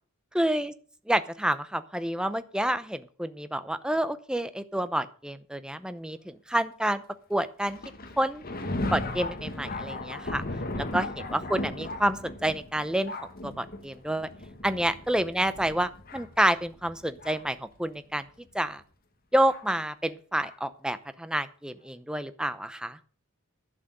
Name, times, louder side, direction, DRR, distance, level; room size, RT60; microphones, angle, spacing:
voice 1, 0.3-0.7 1.1-7.0 7.3-7.8 8.2-8.4 8.9-10.4 10.8-13.2 13.4-14.3 14.6-18.2 18.5-18.8 19.3-23.0, right 1 dB, 5° right, 12 dB, 0.7 m, -28 dB
Thunder, 7.7-17.6 18.4-18.5 19.5-19.6 20.4-20.6, left 2 dB, 45° left, 1.6 m, -37 dB
11.5 x 6.2 x 7.9 m, 0.42 s
head